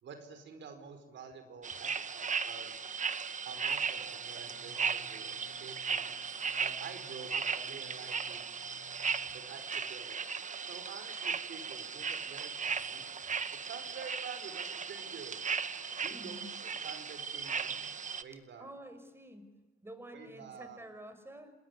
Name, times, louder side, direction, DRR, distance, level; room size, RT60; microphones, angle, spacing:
voice 1, 0.0-2.7 3.4-6.1 6.6-8.5 9.3-10.2 10.7-13.1 13.6-15.5 16.0-17.9 18.2-18.7 20.1-20.8, right 6 dB, 65° right, 8 dB, 4.8 m, -49 dB
sound 1, 1.6-18.2, right 6 dB, 40° right, 1.5 m, -37 dB
sound 2, 4.2-9.9, left 6 dB, 70° left, 5.5 m, -61 dB
voice 2, 16.1-16.5 18.6-19.5 19.8-21.5, right 1 dB, 10° right, 8 dB, 6.0 m, -49 dB
28.5 x 21.0 x 9.9 m, 1.1 s
cardioid pair, 90°, 20 cm